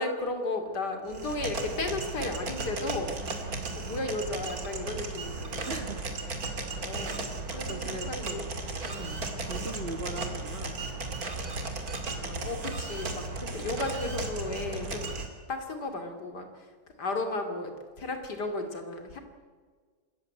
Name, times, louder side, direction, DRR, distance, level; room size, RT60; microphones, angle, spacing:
voice 1, 0.0-5.9 6.5-8.4 8.8-9.1 12.1-15.1 15.5-16.7 17.0-19.2, left 2 dB, 65° left, 5 dB, 3.2 m, -35 dB
sound 1, 1.1-15.3, right 3 dB, 55° right, 2.9 m, -35 dB
voice 2, 3.5-3.9 5.7-6.1 6.6-7.0 7.5-8.4 9.0-10.8, right 2 dB, 35° right, 7 dB, 1.6 m, -40 dB
25.5 x 14.0 x 9.6 m, 1.5 s
omnidirectional pair, 1.9 m